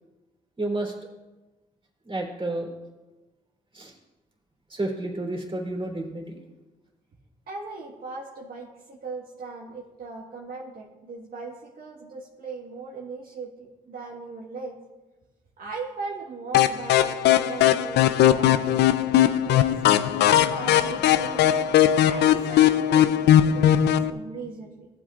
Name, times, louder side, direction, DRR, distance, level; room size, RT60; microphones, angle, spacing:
voice 1, 0.6-0.9 2.0-2.7 3.7-3.9 4.7-6.4, right 2 dB, 30° right, -1 dB, 3.2 m, -30 dB
voice 2, 7.5-14.8 15.6-18.8 19.4-21.5 22.1-24.9, right 4 dB, 60° right, -3 dB, 1.5 m, -39 dB
sound 1, 16.5-24.1, left 11 dB, 85° left, 0.4 m, -19 dB
15.0 x 8.4 x 2.5 m, 1.1 s
supercardioid pair, 60°, 17 cm